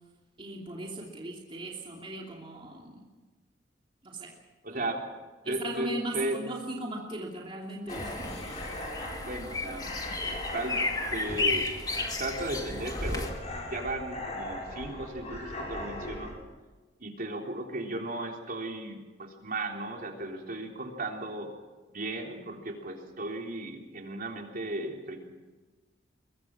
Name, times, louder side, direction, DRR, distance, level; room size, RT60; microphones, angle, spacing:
voice 1, 0.4-3.0 4.0-4.3 4.7-4.8 5.4-8.4, right 2 dB, 30° right, -1 dB, 2.9 m, -38 dB
voice 2, 4.6-5.0 5.5-6.4 9.0-9.9 10.5-10.8 11.1-11.7 12.2-13.3 13.7-16.3 17.0-21.5 21.9-25.2, right 1 dB, 50° right, 2 dB, 3.6 m, -35 dB
sound 1, 7.9-16.3, left 1 dB, 40° left, 6.1 m, -39 dB
sound 2, 7.9-13.3, left 3 dB, 20° left, 2.3 m, -33 dB
23.0 x 22.5 x 6.3 m, 1.3 s
head